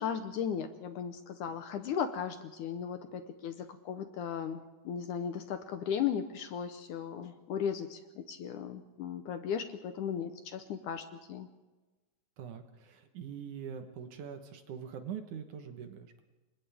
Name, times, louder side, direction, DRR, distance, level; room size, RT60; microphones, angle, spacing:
voice 1, 0.0-11.5, left 8 dB, 70° left, 8 dB, 2.1 m, -36 dB
voice 2, 12.4-16.2, right 8 dB, 65° right, 7 dB, 2.4 m, -43 dB
29.5 x 25.0 x 3.6 m, 1.2 s
omnidirectional pair, 4.2 m